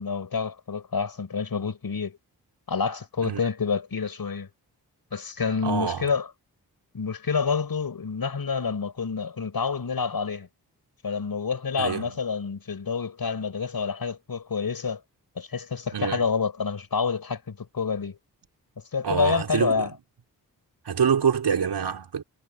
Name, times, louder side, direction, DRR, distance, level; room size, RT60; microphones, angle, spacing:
voice 1, 0.0-2.2 2.7-4.5 5.1-6.3 6.9-10.5 11.0-15.0 15.4-18.2 18.9-19.9, left 5 dB, 65° left, 5.2 m, -28 dB
voice 2, 5.6-6.1 11.8-12.2 15.9-16.2 19.0-19.9 20.9-22.2, right 7 dB, 85° right, 5.2 m, -26 dB
cardioid pair, 45°, 39 cm